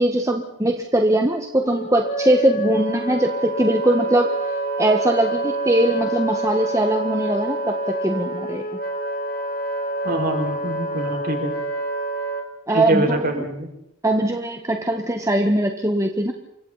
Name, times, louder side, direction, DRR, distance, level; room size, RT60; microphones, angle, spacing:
voice 1, 0.0-4.3 4.8-8.7 12.7-13.5 14.0-16.3, right 1 dB, 15° right, 3 dB, 1.6 m, -21 dB
Wind instrument woodwind instrument, 1.6-12.5, right 2 dB, 50° left, 3.8 m, -27 dB
voice 2, 10.0-11.5 12.7-13.7, right 1 dB, 50° right, 2 dB, 6.3 m, -24 dB
29.5 x 25.0 x 4.3 m, 0.83 s
head